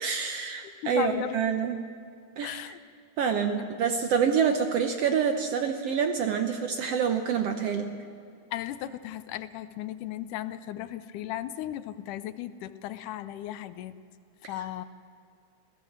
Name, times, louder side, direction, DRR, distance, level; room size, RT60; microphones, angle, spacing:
voice 1, 0.0-1.8 2.4-2.6 3.2-8.0, right 7 dB, 70° right, 6 dB, 1.6 m, -27 dB
voice 2, 0.8-1.7 2.4-2.8 3.6-3.7 8.5-13.9 14.5-14.8, left 12 dB, 80° left, 13 dB, 2.2 m, -36 dB
27.5 x 17.0 x 7.3 m, 2.2 s
omnidirectional pair, 3.7 m